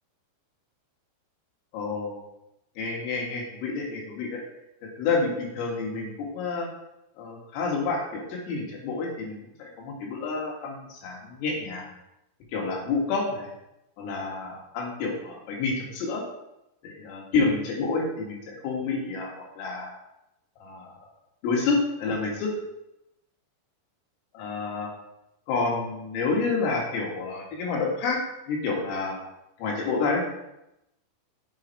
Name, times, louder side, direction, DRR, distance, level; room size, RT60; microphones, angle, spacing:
voice 1, 1.7-2.2 2.8-4.4 5.0-6.7 7.2-11.9 12.5-13.5 14.0-16.2 16.8-19.9 20.6-20.9 21.4-22.5 24.3-24.9 25.5-28.2 28.5-29.2 29.6-30.2, left 4 dB, 85° left, -1 dB, 4.6 m, -29 dB
8.2 x 6.7 x 4.7 m, 0.88 s
omnidirectional pair, 5.8 m